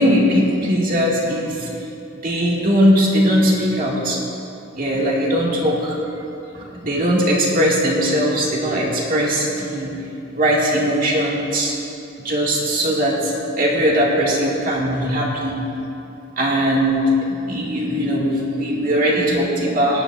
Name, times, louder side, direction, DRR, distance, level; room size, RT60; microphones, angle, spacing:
voice 1, 0.0-1.7 2.2-4.2 4.8-6.0 6.5-10.0 10.3-11.7 12.2-15.6 16.4-20.0, equal, 45° right, -4 dB, 2.0 m, -19 dB
18.5 x 10.0 x 2.5 m, 2.9 s
head